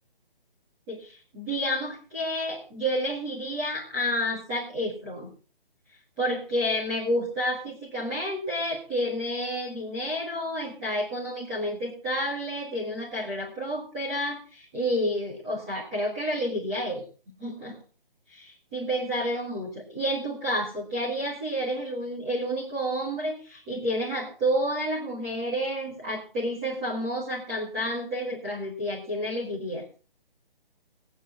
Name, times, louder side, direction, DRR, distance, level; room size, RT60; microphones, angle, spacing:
voice 1, 0.9-5.3 6.2-17.0 17.4-17.8 18.3-29.8, equal, 10° right, -7 dB, 1.7 m, -30 dB
18.5 x 9.2 x 4.3 m, 0.37 s
hypercardioid pair, 175°, 29 cm